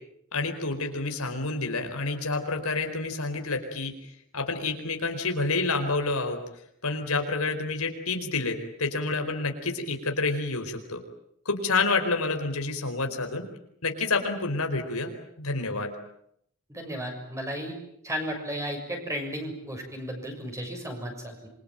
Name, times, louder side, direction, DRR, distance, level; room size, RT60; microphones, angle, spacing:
voice 1, 0.3-3.9 4.3-6.4 6.8-11.0 11.4-13.5 13.8-15.1 15.4-16.0, left 3 dB, 80° left, 5 dB, 4.7 m, -28 dB
voice 2, 16.7-17.8 18.0-21.3, equal, 15° right, 3 dB, 6.8 m, -34 dB
27.5 x 24.0 x 9.0 m, 0.73 s
head